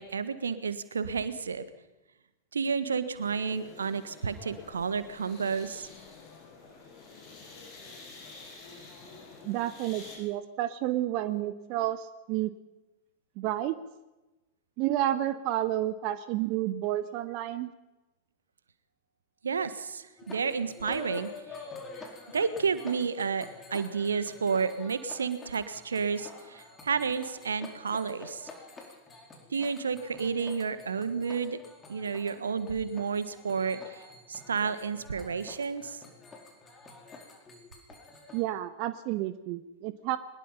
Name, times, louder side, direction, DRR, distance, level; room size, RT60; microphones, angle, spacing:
voice 1, 0.0-1.6 2.5-5.9 19.4-21.3 22.3-28.5 29.5-31.6 31.9-34.0 34.3-36.0, right 5 dB, 70° right, 13 dB, 1.4 m, -31 dB
sound 1, 3.2-10.2, left 3 dB, 40° left, 7.9 m, -49 dB
voice 2, 9.4-12.5 13.4-13.8 14.8-17.7 38.3-40.2, right 13 dB, 45° right, 13 dB, 0.9 m, -30 dB
sound 2, 20.2-38.4, left 3 dB, 20° left, 4.7 m, -48 dB
22.0 x 20.5 x 5.7 m, 1.0 s
figure-of-eight pair, 90°, 0 cm